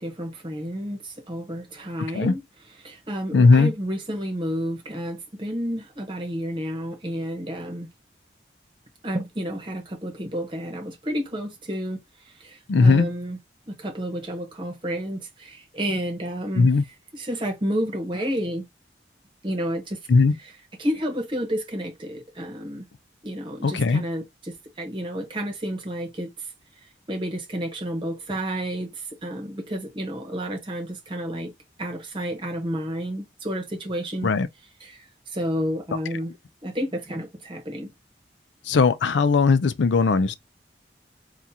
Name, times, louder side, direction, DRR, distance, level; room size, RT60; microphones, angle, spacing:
voice 1, 0.0-2.4 2.8-7.9 9.0-12.0 12.4-13.4 13.7-16.7 17.1-18.6 19.4-20.0 20.4-20.5 20.8-22.8 23.2-26.3 27.1-31.5 31.8-34.3 34.8-35.0 35.3-36.3 36.6-37.9, equal, 30° right, 1.0 m, -30 dB
voice 2, 3.3-3.7 12.7-13.1 16.6-16.8 20.1-20.3 23.6-24.0 34.2-34.5 38.7-40.3, left 4 dB, 90° left, 0.4 m, -18 dB
3.6 x 2.4 x 2.8 m
head